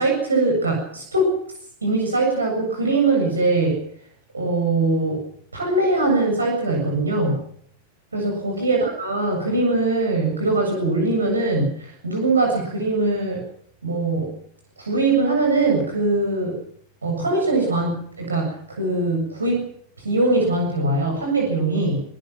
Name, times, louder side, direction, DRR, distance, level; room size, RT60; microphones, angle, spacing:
voice 1, 0.0-1.4 1.8-3.8 4.3-5.2 5.5-7.4 8.1-13.4 13.8-14.3 14.8-16.6 17.0-19.7 20.0-22.0, right 2 dB, 75° right, 2 dB, 7.6 m, -21 dB
26.5 x 19.5 x 6.1 m, 0.63 s
figure-of-eight pair, 90°, 0 cm